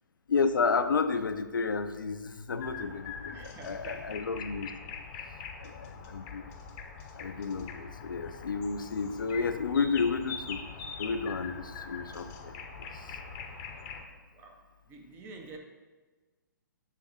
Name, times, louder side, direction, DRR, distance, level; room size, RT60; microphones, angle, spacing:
voice 1, 0.3-4.7 5.6-6.5 7.2-10.6 11.0-12.5 12.9-13.2, left 5 dB, 80° left, 10 dB, 0.5 m, -31 dB
sound 1, 2.6-14.0, left 5 dB, 25° left, 0.7 m, -43 dB
voice 2, 3.3-4.2 14.3-15.6, right 3 dB, 20° right, 3 dB, 0.7 m, -48 dB
6.6 x 3.4 x 4.9 m, 1.3 s
figure-of-eight pair, 125°, 11 cm